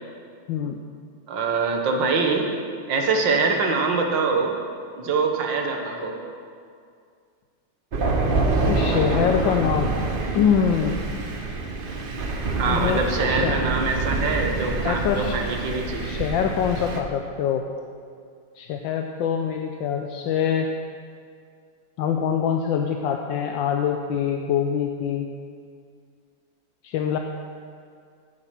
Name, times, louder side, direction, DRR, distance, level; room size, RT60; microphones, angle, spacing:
voice 1, 0.5-0.8 8.3-9.9 10.3-10.9 12.7-13.6 14.8-15.4 16.0-17.6 18.6-20.7 22.0-25.3 26.8-27.2, left 8 dB, 75° left, 4 dB, 1.3 m, -24 dB
voice 2, 1.3-2.5 2.9-4.5 5.0-6.1 12.6-16.2, right 4 dB, 65° right, 2 dB, 1.9 m, -24 dB
Thunder, 7.9-17.0, right 3 dB, 45° right, 0.7 m, -26 dB
10.0 x 7.7 x 7.4 m, 2.2 s
omnidirectional pair, 2.2 m